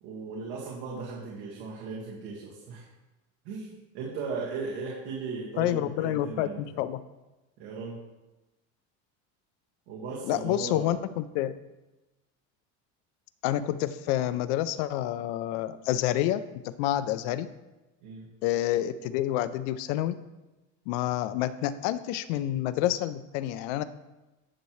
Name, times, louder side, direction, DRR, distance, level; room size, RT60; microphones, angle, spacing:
voice 1, 0.0-2.9 3.4-6.7 7.6-8.0 9.9-10.9 18.0-18.3, right 4 dB, 75° right, -4 dB, 1.9 m, -37 dB
voice 2, 5.6-7.0 10.3-11.6 13.4-17.5 18.4-20.2 20.9-23.8, left 13 dB, 85° left, 12 dB, 0.5 m, -28 dB
9.9 x 7.6 x 3.2 m, 1.1 s
cardioid pair, 165°, 35 cm